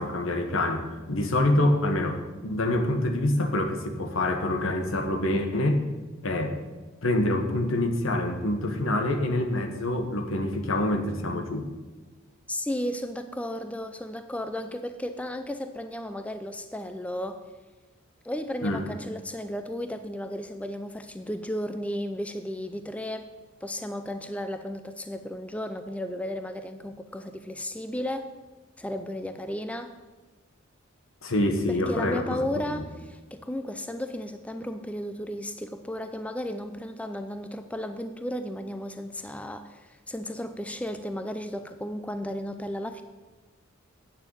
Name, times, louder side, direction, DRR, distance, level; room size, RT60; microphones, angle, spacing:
voice 1, 0.0-5.8 6.2-6.6 7.0-11.7 18.6-18.9 31.2-32.4 32.7-32.8, left 1 dB, 75° left, 6 dB, 1.3 m, -26 dB
voice 2, 12.5-17.4 18.2-23.3 23.6-28.3 28.8-29.9 31.7-43.0, left 1 dB, 5° left, 8 dB, 0.4 m, -34 dB
8.9 x 6.9 x 7.1 m, 1.3 s
head